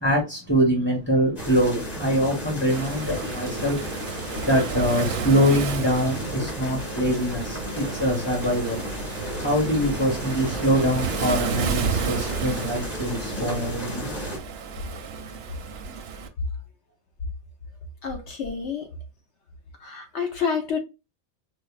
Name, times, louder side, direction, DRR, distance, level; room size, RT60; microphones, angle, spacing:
voice 1, 0.0-3.8 4.4-8.8 9.4-14.2, equal, 10° left, 1.0 m, -24 dB
sound 1, 1.4-14.4, equal, 30° left, 1.5 m, -34 dB
Waves surf, 2.7-16.3, right 6 dB, 65° right, 0.7 m, -32 dB
voice 2, 18.0-18.9 19.8-20.8, left 6 dB, 65° left, 0.9 m, -28 dB
5.2 x 2.0 x 2.4 m
omnidirectional pair, 1.3 m